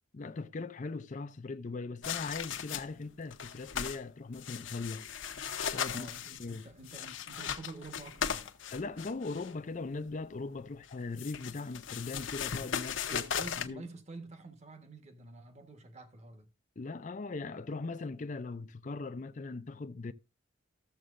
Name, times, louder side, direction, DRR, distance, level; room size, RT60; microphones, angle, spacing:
voice 1, 0.1-5.1 5.7-6.1 6.4-6.7 8.7-13.2 13.6-13.8 16.8-20.1, left 3 dB, 40° left, 0.5 m, -39 dB
sound 1, 2.0-3.0 3.3-4.0 4.3-9.5 10.8-13.7, left 8 dB, 70° left, 0.8 m, -37 dB
voice 2, 5.9-8.5 13.0-16.5, right 3 dB, 35° right, 1.3 m, -48 dB
14.0 x 7.5 x 2.5 m
head